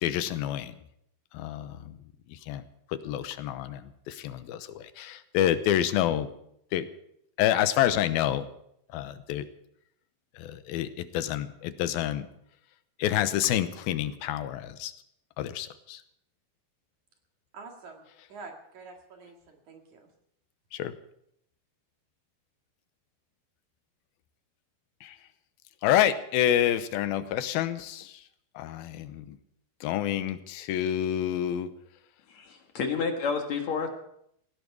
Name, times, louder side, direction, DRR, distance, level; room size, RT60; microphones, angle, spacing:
voice 1, 0.0-0.7 1.3-2.0 2.3-2.6 2.9-6.3 6.7-6.9 7.4-8.5 8.9-9.5 10.4-12.3 13.0-14.9 15.4-16.0 20.7-21.0 25.0-25.2 25.8-28.2 28.6-29.4 29.8-31.7, left 11 dB, 90° left, 12 dB, 2.7 m, -28 dB
voice 2, 17.5-18.0 18.3-20.1, right 4 dB, 55° right, 3 dB, 3.2 m, -46 dB
voice 3, 32.3-33.9, left 5 dB, 55° left, 4 dB, 2.6 m, -30 dB
18.5 x 16.0 x 4.8 m, 0.74 s
omnidirectional pair, 4.3 m